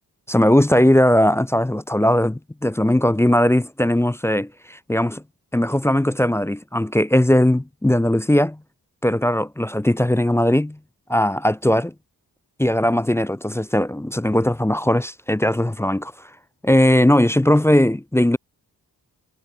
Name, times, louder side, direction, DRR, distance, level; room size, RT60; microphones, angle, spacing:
voice 1, 0.3-5.2 5.5-8.6 9.0-10.8 11.1-11.9 12.6-16.1 16.6-18.4, left 1 dB, 5° left, 0.5 m, -19 dB
wide cardioid pair, 100°, 38 cm